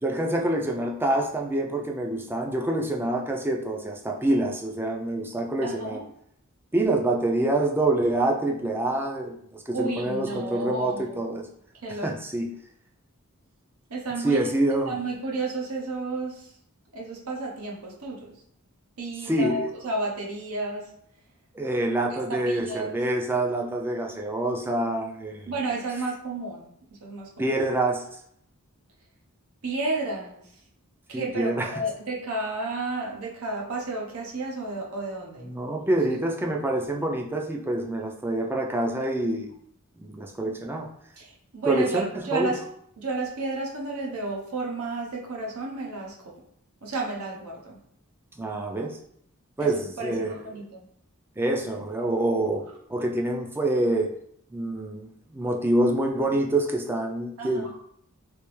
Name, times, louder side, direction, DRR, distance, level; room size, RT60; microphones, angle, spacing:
voice 1, 0.0-6.0 6.7-11.4 12.0-12.5 14.2-14.9 19.3-19.7 21.5-25.5 27.4-28.0 31.1-31.7 35.4-39.5 40.0-40.9 41.7-42.5 48.4-49.0 49.6-50.4 51.4-54.1 54.5-57.8, right 1 dB, 10° right, 1 dB, 0.4 m, -26 dB
voice 2, 5.6-6.0 9.7-11.4 11.8-12.1 13.9-14.5 14.8-16.5 16.9-18.4 19.0-20.9 22.3-23.0 25.5-27.5 29.6-30.5 31.1-35.5 41.2-42.6 43.0-46.3 46.8-47.8 49.6-49.7 50.0-50.8 57.4-57.7, right 2 dB, 80° right, -2 dB, 0.8 m, -32 dB
3.4 x 3.0 x 3.1 m, 0.70 s
head